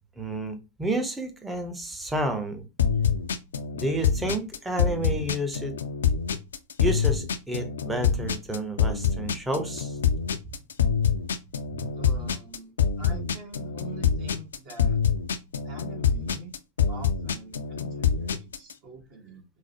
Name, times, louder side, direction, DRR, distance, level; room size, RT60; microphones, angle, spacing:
voice 1, 0.2-2.7 3.7-5.8 6.8-10.0 11.8-11.9, right 1 dB, 10° right, 0.7 m, -30 dB
sound 1, 2.8-18.7, left 7 dB, 65° left, 0.3 m, -25 dB
voice 2, 11.9-15.0 15.6-16.5 16.9-19.4, right 2 dB, 40° right, 0.9 m, -44 dB
4.7 x 2.0 x 2.8 m
figure-of-eight pair, 90°, 0 cm